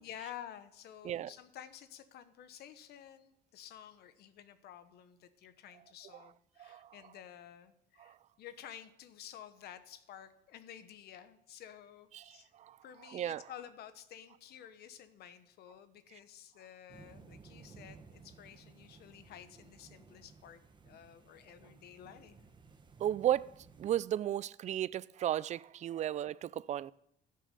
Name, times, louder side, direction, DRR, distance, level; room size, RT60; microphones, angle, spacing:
voice 1, 0.0-12.5 12.8-22.4, left 10 dB, 70° left, 1.1 m, -52 dB
voice 2, 6.6-6.9 8.0-8.1 12.1-12.8 13.1-13.4 23.0-26.9, right 11 dB, 45° right, 0.4 m, -35 dB
sound 1, 16.9-24.0, right 4 dB, 25° right, 1.2 m, -57 dB
14.5 x 6.7 x 6.7 m
cardioid pair, 110°, 17 cm